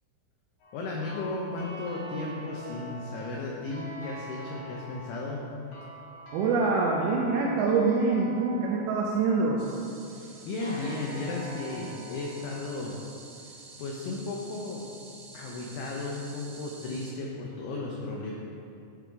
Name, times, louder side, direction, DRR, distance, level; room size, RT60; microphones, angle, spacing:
sound 1, 0.6-9.8 10.6-13.5, right 1 dB, 65° left, 2.0 m, -45 dB
voice 1, 0.7-5.4 10.1-13.0 13.3-14.9 15.3-18.3, left 2 dB, 85° left, -2 dB, 2.3 m, -35 dB
voice 2, 6.3-9.6, right 4 dB, 85° right, -2 dB, 2.5 m, -25 dB
sound 2, 9.6-17.1, right 3 dB, 70° right, 2.4 m, -49 dB
12.0 x 4.6 x 3.8 m, 2.6 s
omnidirectional pair, 5.6 m